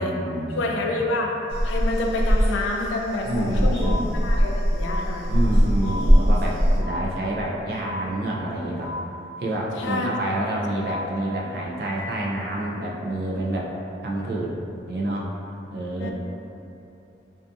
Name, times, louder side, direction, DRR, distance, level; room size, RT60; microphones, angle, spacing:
voice 1, 0.0-1.0 3.2-4.1 5.3-8.9 9.4-13.7 14.0-14.5 14.9-15.4 15.7-16.1, right 1 dB, 55° right, -3 dB, 0.4 m, -28 dB
voice 2, 0.6-1.3 1.6-5.3 9.8-10.5 16.0-16.1, left 2 dB, 80° left, 1 dB, 0.3 m, -28 dB
sound 1, 1.5-6.8, equal, 30° left, 0.9 m, -21 dB
sound 2, 3.8-4.0 4.8-5.0 5.8-6.0 6.8-7.0 7.8-8.0 8.8-9.0 9.8-10.0 10.8-11.0 11.8-12.0, left 3 dB, 5° left, 0.5 m, -34 dB
2.6 x 2.3 x 2.5 m, 2.7 s
head